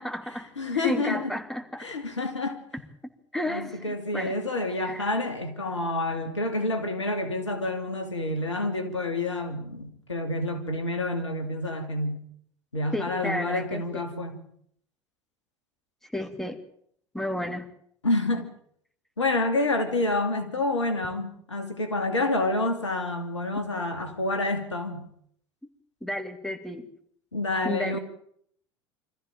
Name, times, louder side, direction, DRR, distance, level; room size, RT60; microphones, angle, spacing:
voice 1, 0.0-0.5 0.7-1.9 3.3-4.3 4.8-5.0 12.9-14.0 16.1-16.6 17.1-17.7 26.0-26.9 27.6-28.0, left 1 dB, 5° left, 2.9 m, -32 dB
voice 2, 0.6-1.3 1.8-2.6 3.5-12.2 12.7-14.4 18.0-18.5 19.2-25.0 27.3-28.0, left 2 dB, 85° left, 2.6 m, -28 dB
24.5 x 14.5 x 9.0 m
figure-of-eight pair, 75°, 15 cm